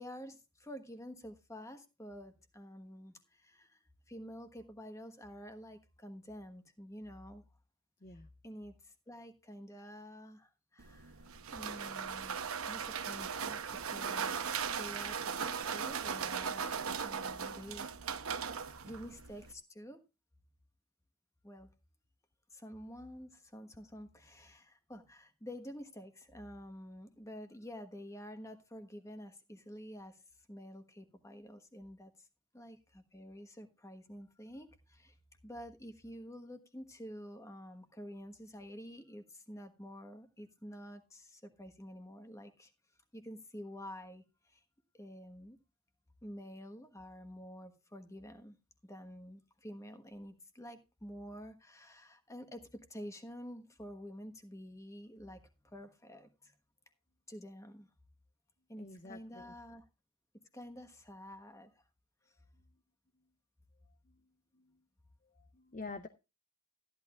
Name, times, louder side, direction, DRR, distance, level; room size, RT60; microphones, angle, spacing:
voice 1, 0.0-3.8 4.1-7.4 8.4-16.7 17.0-17.9 18.8-20.0 21.4-21.7 22.5-30.2 30.5-32.3 32.5-35.1 35.4-42.7 43.1-44.6 44.9-45.6 46.2-48.6 48.8-56.5 57.3-57.9 58.7-59.8 60.5-61.8, equal, 15° left, 7 dB, 1.3 m, -49 dB
sound 1, 10.8-19.5, right 6 dB, 85° right, 0.9 m, -38 dB
voice 2, 58.8-59.5 62.5-62.7 63.1-63.3 64.0-64.8 65.2-66.1, left 3 dB, 40° left, 8 dB, 0.7 m, -49 dB
14.0 x 11.0 x 2.4 m, 0.27 s
head